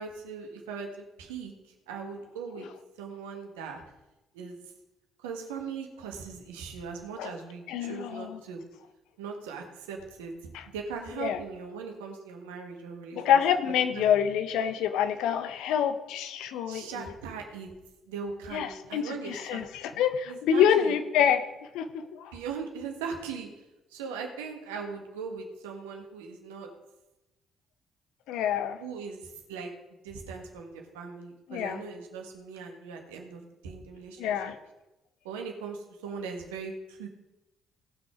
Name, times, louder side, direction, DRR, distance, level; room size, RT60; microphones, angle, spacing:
voice 1, 0.0-1.5 1.9-2.7 3.0-3.8 4.3-4.6 5.2-8.6 9.2-13.4 13.9-14.0 16.7-17.7 18.1-19.7 20.3-20.9 22.3-23.6 23.9-26.7 28.8-29.7 30.0-34.3 35.2-37.1, right 5 dB, 75° right, 3 dB, 1.6 m, -39 dB
voice 2, 7.7-8.4 10.5-10.6 11.2-11.4 13.1-17.1 18.5-21.4 21.7-22.3 28.3-28.8 31.5-31.8 34.2-34.6, left 8 dB, 65° left, 10 dB, 0.9 m, -27 dB
18.0 x 6.2 x 5.0 m, 0.99 s
figure-of-eight pair, 45°, 0 cm